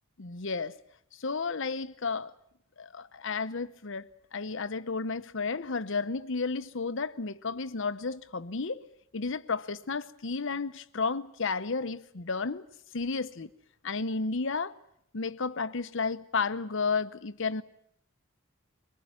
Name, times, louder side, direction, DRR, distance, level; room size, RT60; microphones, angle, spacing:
voice 1, 0.2-0.8 1.2-2.3 2.8-8.8 9.1-12.6 12.9-13.5 13.8-14.7 15.1-17.6, left 4 dB, 65° left, 0.9 m, -32 dB
23.5 x 19.5 x 9.6 m
head